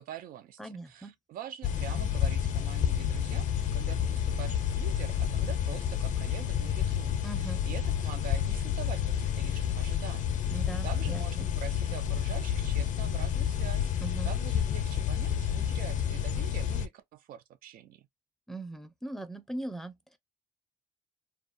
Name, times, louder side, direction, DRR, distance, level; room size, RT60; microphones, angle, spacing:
voice 1, 0.0-13.9 14.2-18.1, right 10 dB, 70° right, 0.5 m, -45 dB
voice 2, 0.6-1.1 7.2-7.6 10.5-11.5 14.0-14.3 18.5-20.2, right 2 dB, ahead, 0.5 m, -40 dB
sound 1, 1.6-16.9, left 9 dB, 55° left, 0.5 m, -30 dB
2.3 x 2.2 x 2.5 m
cardioid pair, 95°, 15 cm